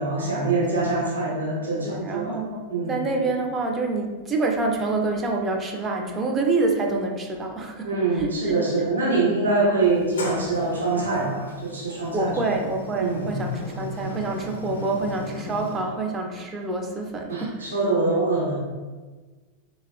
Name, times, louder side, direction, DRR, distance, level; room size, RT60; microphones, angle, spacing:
voice 1, 0.0-2.4 2.7-3.0 7.8-12.5 12.9-13.3 17.3-18.6, right 3 dB, 70° right, -5 dB, 0.7 m, -24 dB
voice 2, 0.7-1.0 1.8-8.6 9.6-9.7 12.1-17.7, right 3 dB, 20° right, 2 dB, 0.4 m, -27 dB
Sliding door, 9.8-15.8, left 2 dB, 70° left, 0.5 m, -36 dB
3.4 x 2.1 x 2.2 m, 1.3 s
figure-of-eight pair, 90°, 0 cm